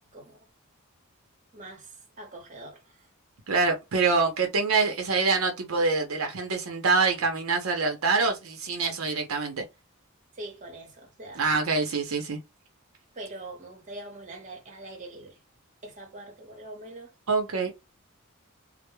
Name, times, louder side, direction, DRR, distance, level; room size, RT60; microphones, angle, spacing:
voice 1, 0.1-0.5 1.5-3.1 10.3-11.5 13.1-15.4 15.8-17.1, right 2 dB, 35° right, 0.9 m, -43 dB
voice 2, 3.5-9.6 11.4-12.4 17.3-17.7, right 4 dB, 75° right, 0.6 m, -25 dB
2.2 x 2.0 x 3.0 m
head